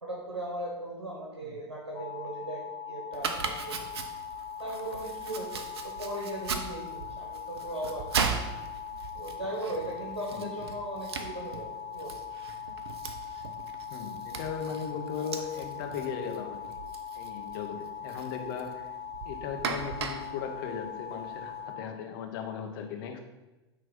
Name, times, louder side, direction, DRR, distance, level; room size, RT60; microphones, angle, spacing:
voice 1, 0.0-3.9 4.6-8.1 9.1-12.1, right 1 dB, 85° right, -3 dB, 1.2 m, -38 dB
sound 1, 1.9-21.8, left 7 dB, 30° left, 1.5 m, -41 dB
Domestic sounds home sounds, 3.1-21.6, right 5 dB, 65° right, 0.8 m, -39 dB
voice 2, 13.9-16.8 17.1-19.0 19.2-23.2, left 7 dB, 55° left, 4 dB, 1.1 m, -37 dB
8.8 x 3.4 x 5.4 m, 1.1 s
figure-of-eight pair, 85°, 14 cm